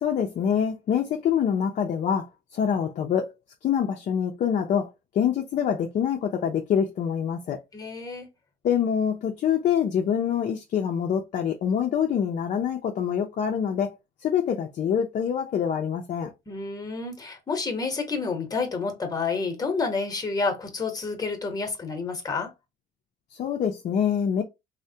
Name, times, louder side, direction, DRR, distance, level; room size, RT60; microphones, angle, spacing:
voice 1, 0.0-2.3 2.5-3.3 3.6-7.6 8.6-14.0 14.2-16.3 23.3-24.4, left 8 dB, 50° left, 0.5 m, -25 dB
voice 2, 7.7-8.3 16.5-22.5, left 4 dB, 20° left, 0.9 m, -29 dB
3.3 x 2.1 x 2.7 m
cardioid pair, 110°, 17 cm